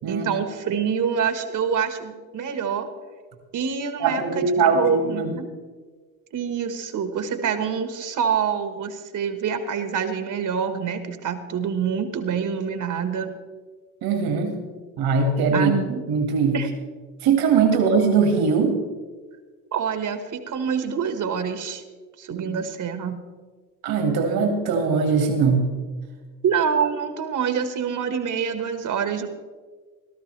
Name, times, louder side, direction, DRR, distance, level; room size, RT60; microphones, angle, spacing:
voice 1, 0.1-2.9 3.5-5.4 6.3-13.3 15.5-16.0 16.5-16.7 19.7-21.8 22.2-23.2 26.4-29.3, right 7 dB, 50° right, 8 dB, 1.6 m, -26 dB
voice 2, 4.0-5.3 14.0-14.6 15.0-15.7 16.1-16.6 17.2-18.7 22.3-22.5 23.8-25.7, right 5 dB, 65° right, 4 dB, 2.1 m, -21 dB
17.5 x 13.0 x 3.4 m, 1.4 s
hypercardioid pair, 65°, 39 cm